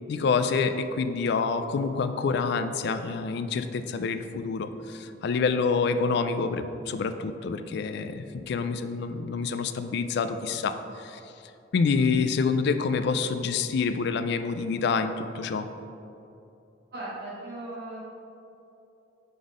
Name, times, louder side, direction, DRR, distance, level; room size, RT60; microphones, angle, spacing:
voice 1, 0.1-11.2 11.7-15.7, left 5 dB, 65° left, 10 dB, 0.3 m, -27 dB
voice 2, 16.9-18.0, right 2 dB, 60° right, -9 dB, 1.5 m, -37 dB
5.4 x 4.0 x 4.8 m, 2.8 s
head